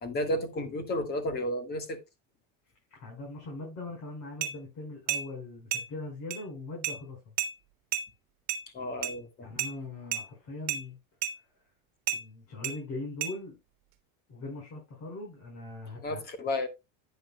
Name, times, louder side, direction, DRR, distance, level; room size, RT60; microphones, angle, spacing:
voice 1, 0.0-2.0 8.7-9.5 16.0-16.7, left 1 dB, 25° left, 1.6 m, -32 dB
voice 2, 2.9-7.4 9.4-11.0 12.1-13.6 14.3-16.2, left 2 dB, 40° left, 5.2 m, -41 dB
sound 1, 4.4-4.5 5.1-5.3 5.7-5.9 6.3-6.4 6.8-7.0 7.4-7.5 7.9-8.1 8.5-8.6 9.0-9.2 9.6-9.7 10.1-10.2 10.7-10.8 11.2-11.4 12.1-12.2 12.6-12.8 13.2-13.3, right 10 dB, 55° right, 1.6 m, -31 dB
10.5 x 9.2 x 2.2 m
cardioid pair, 160°, 39 cm